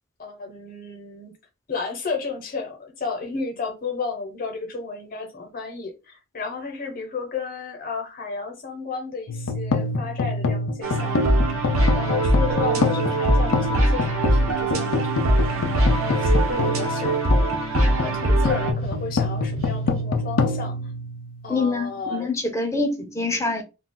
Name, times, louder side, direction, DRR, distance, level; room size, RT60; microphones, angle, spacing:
voice 1, 0.2-1.3 1.7-15.7 16.1-20.8 21.4-22.3, left 4 dB, 45° left, 0.8 m, -33 dB
sound 1, 9.3-21.7, left 3 dB, 80° left, 0.4 m, -26 dB
sound 2, 10.8-18.7, right 1 dB, 85° right, 0.8 m, -22 dB
sound 3, 13.4-20.0, right 4 dB, 70° right, 0.5 m, -42 dB
voice 2, 21.5-23.6, left 3 dB, 15° left, 0.5 m, -25 dB
2.3 x 2.3 x 3.7 m
head